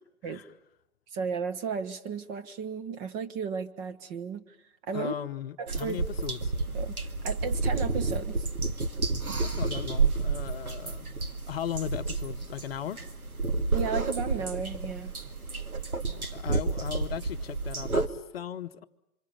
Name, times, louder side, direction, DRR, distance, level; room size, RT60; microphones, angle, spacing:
voice 1, 1.1-4.4 4.9-5.1 5.6-6.0 6.7-6.9 7.2-8.5 13.7-15.1, right 6 dB, 25° right, 1.1 m, -34 dB
voice 2, 4.9-6.5 9.4-11.1 11.5-13.0 16.0-18.8, left 10 dB, 45° left, 0.9 m, -37 dB
sound 1, 5.7-18.1, right 3 dB, 80° right, 2.1 m, -30 dB
27.5 x 26.0 x 7.2 m
figure-of-eight pair, 120°, 43 cm